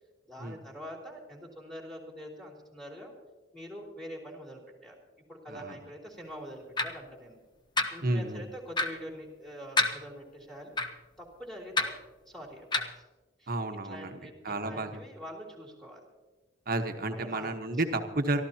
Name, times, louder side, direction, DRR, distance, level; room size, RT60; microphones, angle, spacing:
voice 1, 0.3-3.1 3.5-4.9 5.3-7.4 7.9-10.7 11.2-13.0 13.4-13.5 13.8-16.1 17.1-17.5, equal, ahead, -1 dB, 3.2 m, -45 dB
sound 1, 6.8-6.9 7.8-7.9 8.8-8.9 9.8-9.9 10.8-10.9 11.8-11.9 12.7-12.9, left 3 dB, 25° left, 0.9 m, -26 dB
voice 2, 8.0-8.4 13.5-15.0 16.7-18.4, right 2 dB, 50° right, 7 dB, 1.2 m, -32 dB
24.0 x 13.5 x 2.9 m, 1.2 s
head